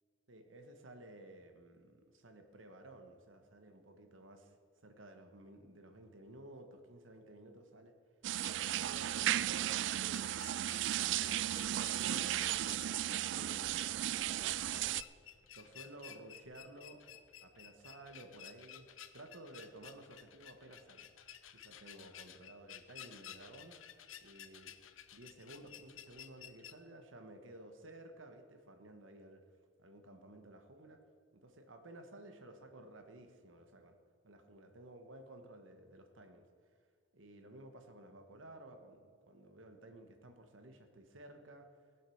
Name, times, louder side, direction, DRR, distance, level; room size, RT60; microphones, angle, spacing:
voice 1, 0.3-4.6 4.8-7.9 8.4-10.3 10.7-11.5 11.8-13.8 14.2-15.1 15.5-17.0 17.4-18.9 19.1-21.1 21.5-23.8 24.2-24.7 25.1-29.5 29.8-31.0 31.4-33.9 34.2-36.4 37.1-41.7, right 1 dB, 80° right, 5 dB, 1.4 m, -55 dB
sound 1, 8.2-26.7, left 10 dB, 85° left, 0.7 m, -55 dB
sound 2, 8.2-15.0, right 12 dB, 65° right, 0.3 m, -35 dB
17.0 x 7.6 x 6.4 m, 2.1 s
head